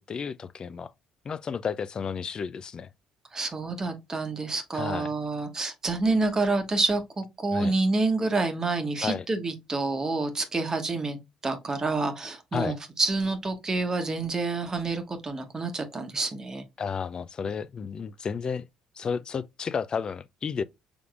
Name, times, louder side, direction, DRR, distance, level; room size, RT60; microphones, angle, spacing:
voice 1, 0.1-0.9 1.2-2.9 4.7-5.1 7.5-7.7 9.0-9.2 12.5-12.8 16.8-18.6 19.0-20.6, left 6 dB, 40° left, 0.4 m, -32 dB
voice 2, 3.3-11.2 11.4-16.6, right 3 dB, 30° right, 1.1 m, -28 dB
4.9 x 3.4 x 2.4 m
hypercardioid pair, 55°, 2 cm